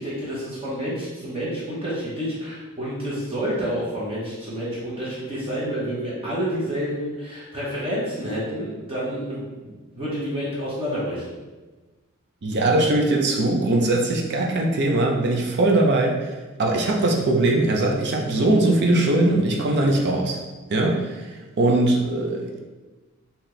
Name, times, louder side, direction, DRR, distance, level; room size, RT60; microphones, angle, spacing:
voice 1, 0.0-11.2, equal, 25° right, -8 dB, 1.0 m, -29 dB
voice 2, 12.4-20.4 20.7-22.6, right 2 dB, 50° right, 0 dB, 0.5 m, -21 dB
4.1 x 2.8 x 3.2 m, 1.2 s
head